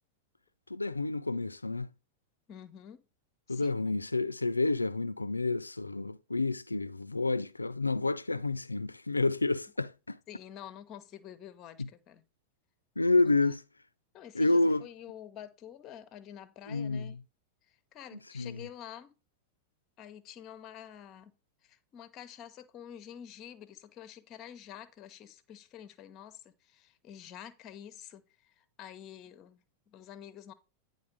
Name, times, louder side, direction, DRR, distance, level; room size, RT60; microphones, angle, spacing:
voice 1, 0.7-1.9 3.5-10.2 11.8-11.9 13.0-13.6 14.3-14.9 16.7-17.2 18.3-18.7, left 2 dB, 80° left, 0.3 m, -29 dB
voice 2, 2.5-3.0 3.5-3.8 10.3-12.2 14.1-17.2 17.6-19.1 20.0-21.4 21.6-30.5, left 10 dB, 35° left, 0.8 m, -48 dB
9.8 x 3.8 x 5.0 m
figure-of-eight pair, 90°, 0 cm